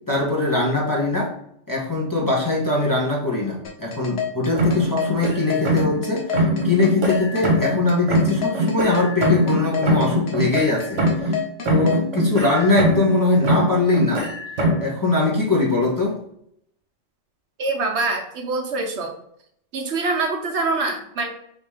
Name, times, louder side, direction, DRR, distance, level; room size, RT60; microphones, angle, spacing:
voice 1, 0.1-1.4 1.7-11.4 11.6-14.3 14.8-16.2, left 2 dB, 15° left, -5 dB, 1.1 m, -22 dB
sound 1, 3.6-12.0, left 8 dB, 65° left, 0.9 m, -28 dB
sound 2, 4.6-6.1 6.3-7.8 8.1-11.4 11.7-13.2 13.4-14.9, equal, 85° right, 1.4 m, -22 dB
voice 2, 17.6-19.1 19.7-21.3, right 3 dB, 70° right, 3 dB, 1.0 m, -24 dB
3.7 x 2.9 x 4.7 m, 0.70 s
omnidirectional pair, 1.2 m